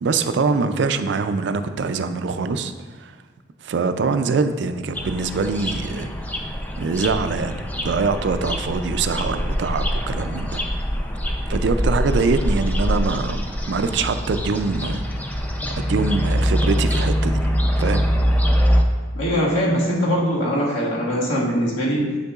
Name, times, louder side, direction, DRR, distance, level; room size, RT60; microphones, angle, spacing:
voice 1, 0.0-2.7 3.0-3.1 3.6-6.1 6.8-10.6 11.5-15.0 15.8-17.4 17.8-18.0, right 4 dB, 60° right, 9 dB, 0.4 m, -23 dB
sound 1, 4.9-18.8, equal, 10° left, 0.4 m, -23 dB
voice 2, 19.1-22.2, equal, 85° left, -5 dB, 1.7 m, -21 dB
8.0 x 6.5 x 2.4 m, 1.4 s
head